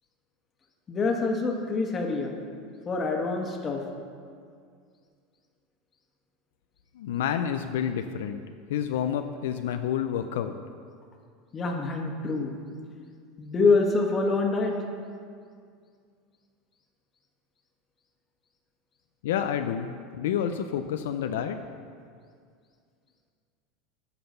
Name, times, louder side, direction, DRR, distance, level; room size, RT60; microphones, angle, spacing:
voice 1, 0.9-2.4 2.8-3.8 11.5-12.5 13.4-14.8, left 3 dB, 30° left, 2 dB, 1.4 m, -26 dB
voice 2, 7.0-8.4 8.7-10.5 19.2-21.6, left 9 dB, 85° left, 8 dB, 0.4 m, -29 dB
9.1 x 5.8 x 6.8 m, 2.2 s
supercardioid pair, 120°, 0 cm